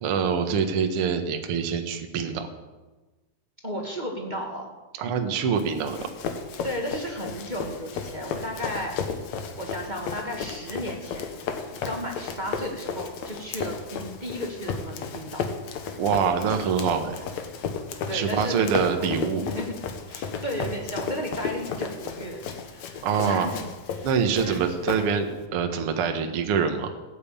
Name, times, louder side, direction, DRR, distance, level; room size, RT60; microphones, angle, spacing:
voice 1, 0.0-2.5 5.0-6.1 16.0-17.3 18.1-19.5 23.0-23.5 24.0-26.9, right 6 dB, 50° right, 6 dB, 1.8 m, -25 dB
voice 2, 3.6-4.7 6.6-9.1 9.6-15.4 18.1-19.8 20.1-23.6 23.9-24.1 24.3-24.6, equal, 15° right, 0 dB, 1.6 m, -34 dB
Run, 5.6-25.4, left 6 dB, 60° left, 2.3 m, -34 dB
16.0 x 9.6 x 8.7 m, 1.2 s
omnidirectional pair, 4.1 m